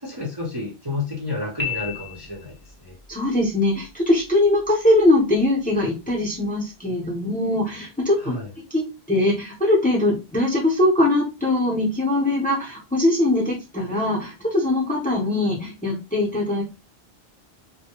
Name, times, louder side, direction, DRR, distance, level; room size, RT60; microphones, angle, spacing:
voice 1, 0.0-2.5 2.8-2.9 8.2-8.5, left 3 dB, 25° right, -5 dB, 0.6 m, -30 dB
Piano, 1.6-2.7, left 5 dB, 50° left, 0.9 m, -31 dB
voice 2, 3.1-8.2 8.7-16.6, left 1 dB, 10° left, -4 dB, 0.7 m, -21 dB
2.2 x 2.1 x 2.9 m, 0.28 s
omnidirectional pair, 1.0 m